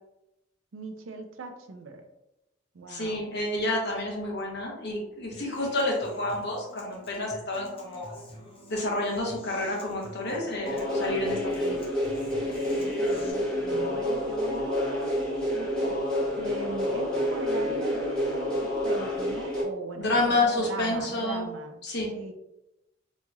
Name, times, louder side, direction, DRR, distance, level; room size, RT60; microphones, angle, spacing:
voice 1, 0.7-2.0 2.7-3.2 12.8-21.8 22.1-22.3, right 3 dB, 70° right, 5 dB, 0.5 m, -40 dB
voice 2, 2.9-8.1 8.7-11.8 20.0-21.5 21.8-22.1, left 2 dB, 55° left, -1 dB, 0.9 m, -29 dB
Human voice / Acoustic guitar, 5.3-13.3, equal, 30° left, 0.6 m, -48 dB
sound 1, 10.6-19.6, equal, 5° left, 1.2 m, -28 dB
4.1 x 2.9 x 2.3 m, 0.90 s
head